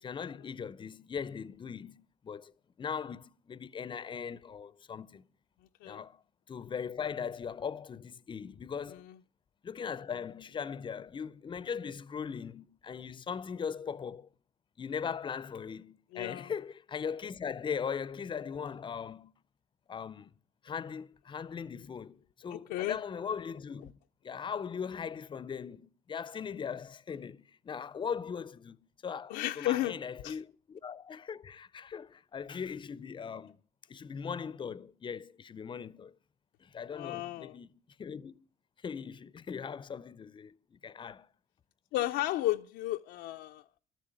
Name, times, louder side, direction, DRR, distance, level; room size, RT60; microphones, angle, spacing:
voice 1, 0.0-2.5 2.8-5.2 5.8-6.2 6.5-9.1 9.6-14.3 14.8-19.3 19.9-20.3 20.6-24.0 24.2-28.8 29.0-33.6 33.9-36.1 36.6-37.7 38.0-38.4 38.8-41.3, left 6 dB, 30° left, 0.5 m, -39 dB
voice 2, 16.1-16.5 22.5-23.0 29.3-30.0 30.2-30.3 36.9-37.6 41.9-43.8, left 15 dB, 90° left, 0.5 m, -33 dB
13.0 x 7.3 x 9.0 m
cardioid pair, 110°, 17 cm